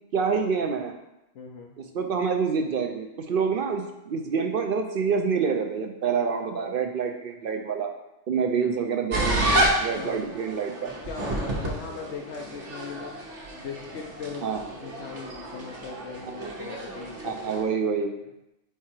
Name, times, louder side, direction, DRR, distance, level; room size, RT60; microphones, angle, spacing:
voice 1, 0.1-0.9 1.8-7.9 8.3-10.9 14.4-14.6 16.3-16.4 17.2-18.1, right 5 dB, 60° right, 4 dB, 0.7 m, -27 dB
voice 2, 1.3-1.7 8.4-8.8 9.9-10.2 11.1-14.5 14.8-17.9, left 5 dB, 80° left, 0 dB, 0.9 m, -39 dB
sound 1, 9.1-17.6, right 1 dB, 85° right, 1.4 m, -30 dB
4.7 x 4.6 x 4.4 m, 0.90 s
omnidirectional pair, 1.2 m